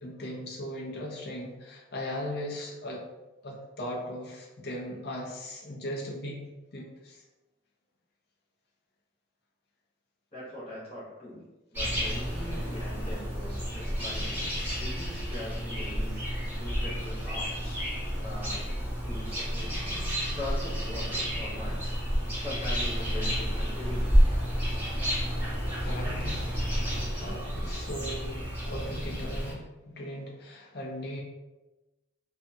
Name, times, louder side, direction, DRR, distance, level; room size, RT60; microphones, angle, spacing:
voice 1, 0.0-3.0 3.4-6.4 6.7-7.2 25.8-26.5 27.1-31.2, equal, 55° left, -2 dB, 0.6 m, -38 dB
voice 2, 10.3-11.4 11.7-17.8 18.2-18.7 19.0-19.7 20.0-21.9 22.3-24.2, left 1 dB, 30° left, -9 dB, 1.0 m, -41 dB
sound 1, 11.7-29.5, equal, 10° right, 0.9 m, -30 dB
2.6 x 2.3 x 2.7 m, 1.1 s
head